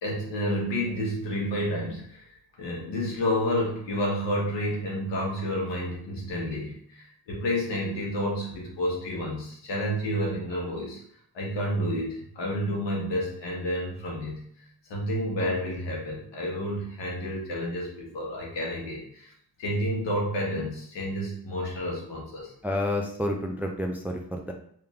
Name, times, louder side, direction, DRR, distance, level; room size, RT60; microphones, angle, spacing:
voice 1, 0.0-11.0 11.3-14.4 14.8-19.3 19.6-22.5, equal, 80° left, -3 dB, 1.6 m, -30 dB
voice 2, 22.6-24.5, left 1 dB, 5° right, 3 dB, 0.3 m, -29 dB
3.6 x 2.9 x 3.5 m, 0.65 s
cardioid pair, 110°, 43 cm